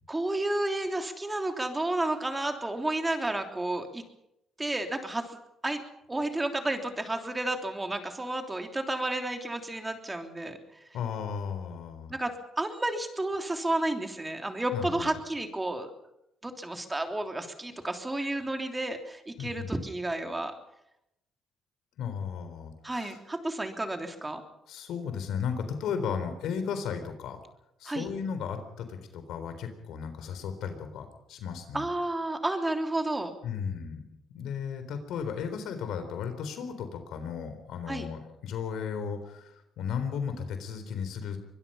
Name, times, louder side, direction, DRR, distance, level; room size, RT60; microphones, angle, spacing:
voice 1, 0.1-4.0 4.6-5.3 5.6-5.8 6.1-10.6 12.1-15.9 16.4-20.5 22.8-24.4 27.8-28.1 31.7-33.3 37.9-38.1, right 2 dB, 15° right, 5 dB, 3.2 m, -31 dB
voice 2, 10.9-12.1 14.7-15.1 19.4-19.7 22.0-23.2 24.7-27.4 27.8-31.8 33.4-34.0 34.3-41.4, left 7 dB, 85° left, 9 dB, 3.9 m, -35 dB
24.0 x 21.0 x 5.6 m, 0.83 s
cardioid pair, 90°, 0 cm